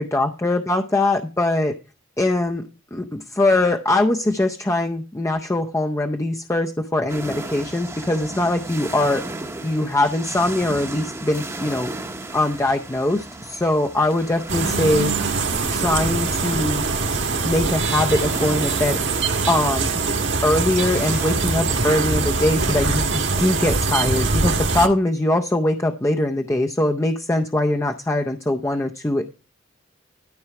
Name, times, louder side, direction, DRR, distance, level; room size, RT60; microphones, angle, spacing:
voice 1, 0.0-1.7 2.2-9.2 9.6-11.9 12.3-15.1 15.7-16.9 17.4-19.0 19.5-19.9 20.4-29.4, left 1 dB, 15° left, 3 dB, 0.5 m, -22 dB
sound 1, 7.1-21.4, right 2 dB, 15° right, 0.8 m, -35 dB
sound 2, 14.5-24.9, right 4 dB, 65° right, 1.5 m, -23 dB
13.0 x 4.6 x 5.8 m, 0.33 s
head